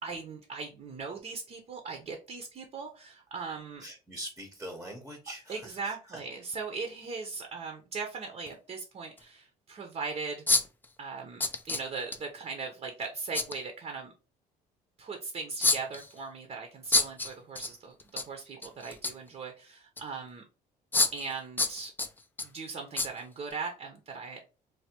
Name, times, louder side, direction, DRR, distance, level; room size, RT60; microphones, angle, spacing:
voice 1, 0.0-3.8 5.5-10.4 11.0-14.1 15.0-20.4 21.1-21.9 22.4-24.4, right 4 dB, 40° right, 3 dB, 0.6 m, -39 dB
voice 2, 3.8-6.2, right 1 dB, 10° right, 2 dB, 0.7 m, -43 dB
sound 1, 6.5-6.6 8.5-8.6 9.2-9.3 10.5-10.8 11.4-12.2 13.3-13.6 15.6-16.1 16.9-17.7 18.0-18.2 18.6-19.3 20.0-20.1 20.9-21.3 21.6-22.5 23.0-23.1 23.5-23.6, left 3 dB, 10° left, 0.3 m, -27 dB
3.3 x 2.2 x 2.8 m, 0.33 s
cardioid pair, 110°, 17 cm